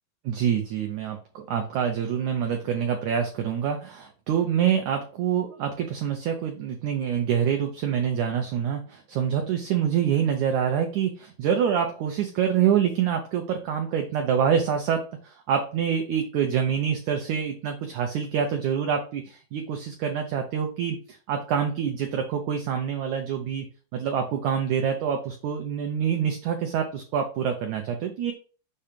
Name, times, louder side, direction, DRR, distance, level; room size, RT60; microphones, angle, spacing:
voice 1, 0.2-23.7 23.9-28.3, right 8 dB, 90° right, 4 dB, 1.6 m, -26 dB
7.1 x 2.8 x 5.0 m, 0.38 s
omnidirectional pair, 4.3 m